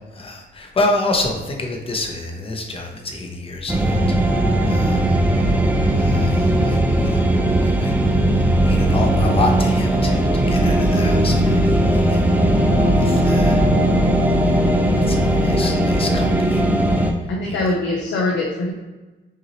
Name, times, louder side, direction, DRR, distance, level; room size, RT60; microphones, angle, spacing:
voice 1, 0.1-5.1 6.0-7.3 7.6-7.9 8.6-12.3 12.5-13.6 14.9-16.7 17.4-17.6, left 2 dB, 30° left, 2 dB, 0.9 m, -28 dB
sound 1, 3.7-17.1, right 1 dB, 10° right, 0.6 m, -18 dB
voice 2, 15.4-15.8 17.3-18.7, left 2 dB, 75° left, -1 dB, 0.8 m, -23 dB
5.9 x 2.7 x 3.0 m, 1.2 s
cardioid pair, 90°, 20 cm